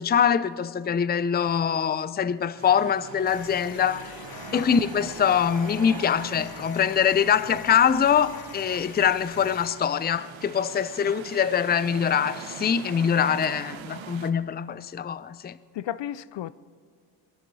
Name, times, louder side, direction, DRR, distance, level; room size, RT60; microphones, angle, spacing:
voice 1, 0.0-4.1 4.5-15.6, left 8 dB, 20° left, 0.4 m, -24 dB
sound 1, 2.6-14.3, right 9 dB, 90° right, 1.0 m, -43 dB
sound 2, 3.3-9.8, left 8 dB, 55° left, 0.9 m, -44 dB
voice 2, 15.7-16.5, left 12 dB, 70° left, 0.6 m, -33 dB
21.5 x 13.5 x 4.1 m
cardioid pair, 80°, 45 cm